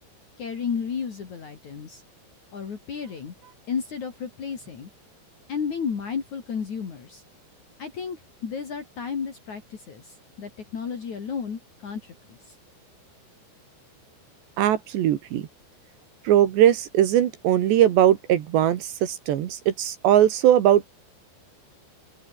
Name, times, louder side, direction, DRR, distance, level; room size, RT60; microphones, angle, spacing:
voice 1, 0.4-2.0 2.5-3.4 3.7-4.9 5.5-7.2 7.8-12.6, left 6 dB, 45° left, 3.9 m, -33 dB
voice 2, 14.6-15.4 16.3-20.9, right 11 dB, 75° right, 3.9 m, -20 dB
open air
omnidirectional pair, 5.2 m